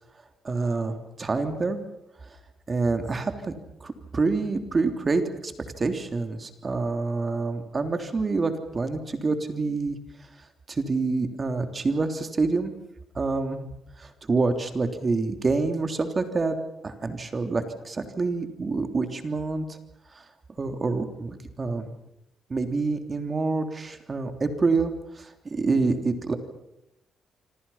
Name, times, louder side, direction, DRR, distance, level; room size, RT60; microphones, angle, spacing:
voice 1, 0.4-1.8 2.7-3.5 3.8-5.5 5.8-10.0 10.7-12.7 13.1-13.7 14.0-16.5 16.8-19.8 20.1-20.2 20.6-21.9 22.5-26.4, right 3 dB, 35° right, 7 dB, 3.3 m, -27 dB
26.5 x 26.0 x 5.8 m, 0.85 s
cardioid pair, 85°, 0 cm